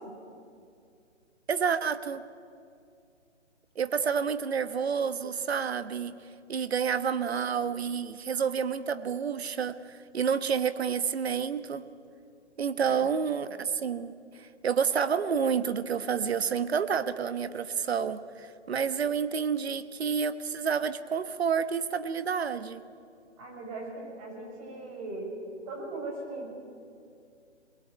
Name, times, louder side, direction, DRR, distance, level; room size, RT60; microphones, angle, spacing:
voice 1, 1.5-2.2 3.7-6.1 6.5-11.8 12.6-14.1 14.4-22.8, right 6 dB, 60° right, 12 dB, 1.4 m, -29 dB
voice 2, 23.4-25.3 25.7-26.5, right 2 dB, 30° right, 0 dB, 6.6 m, -39 dB
21.5 x 21.0 x 9.2 m, 2.4 s
hypercardioid pair, 150°, 35 cm